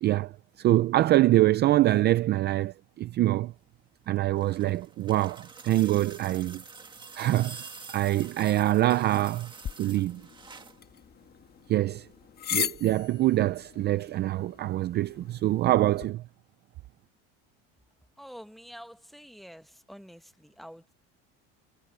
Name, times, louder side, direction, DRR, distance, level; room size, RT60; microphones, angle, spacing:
voice 1, 0.0-0.3 0.6-3.5 4.1-6.6 7.2-9.5 9.8-10.2 11.7-12.1 12.5-16.2, right 15 dB, 35° right, 0.4 m, -25 dB
sound 1, 4.0-10.8 12.1-12.2, right 4 dB, 15° right, 1.7 m, -47 dB
sound 2, 9.6-16.1, left 9 dB, 30° left, 1.5 m, -38 dB
voice 2, 18.2-20.9, equal, ahead, 1.1 m, -47 dB
cardioid pair, 155°, 30 cm